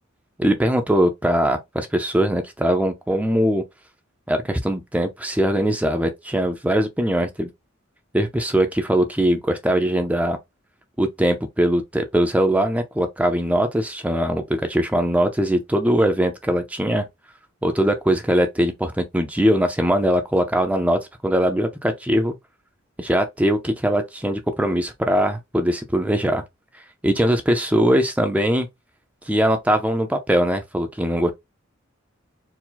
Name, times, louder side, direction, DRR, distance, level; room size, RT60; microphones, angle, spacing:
voice 1, 0.4-3.6 4.3-7.5 8.1-10.4 11.0-17.1 17.6-22.4 23.0-26.4 27.0-28.7 29.2-31.3, equal, 5° right, 0.5 m, -21 dB
4.6 x 2.1 x 3.9 m
head